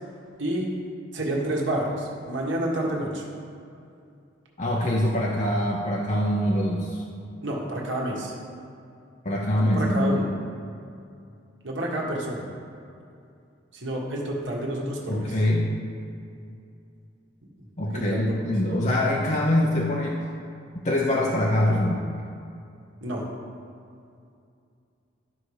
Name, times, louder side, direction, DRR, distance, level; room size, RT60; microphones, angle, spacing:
voice 1, 1.1-3.2 7.4-8.3 9.6-10.3 11.6-12.5 13.7-15.3 17.9-18.4 23.0-23.2, right 1 dB, 80° right, -2 dB, 1.7 m, -29 dB
voice 2, 4.6-7.0 9.2-10.2 15.1-15.7 17.8-20.2 20.7-22.0, left 1 dB, 35° left, -2 dB, 0.8 m, -24 dB
12.5 x 5.6 x 4.9 m, 2.5 s
head